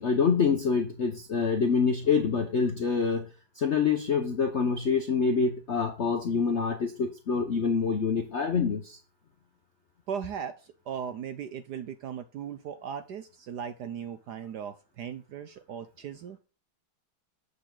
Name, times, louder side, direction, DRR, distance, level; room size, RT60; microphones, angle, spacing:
voice 1, 0.0-3.3 3.6-9.0, left 5 dB, 60° left, 5 dB, 0.7 m, -26 dB
voice 2, 10.1-16.4, right 8 dB, 70° right, 10 dB, 1.0 m, -38 dB
8.0 x 6.9 x 3.8 m, 0.34 s
omnidirectional pair, 2.3 m